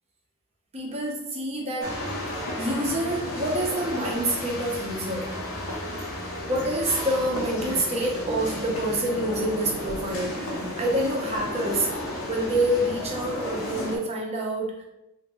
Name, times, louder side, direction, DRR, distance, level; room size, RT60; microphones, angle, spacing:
voice 1, 0.7-2.0 2.6-5.3 6.5-11.9 12.3-14.8, right 1 dB, 30° right, -1 dB, 0.6 m, -27 dB
sound 1, 1.8-14.0, left 1 dB, 75° left, 0.7 m, -33 dB
3.1 x 2.5 x 2.9 m, 0.90 s
head